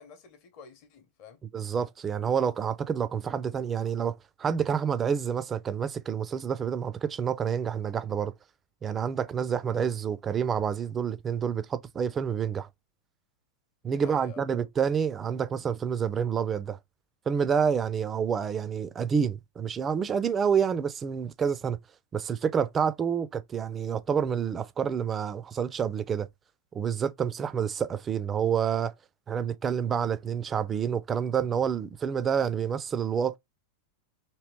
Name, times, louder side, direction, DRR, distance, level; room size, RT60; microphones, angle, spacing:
voice 1, 0.0-1.4 9.5-9.6 13.8-14.4, left 6 dB, 45° left, 0.9 m, -50 dB
voice 2, 1.5-8.3 8.8-12.7 13.8-16.8 17.3-21.8 22.1-26.3 26.7-28.9 29.3-33.4, right 7 dB, 20° right, 0.4 m, -28 dB
3.0 x 2.9 x 3.0 m
figure-of-eight pair, 90°, 0 cm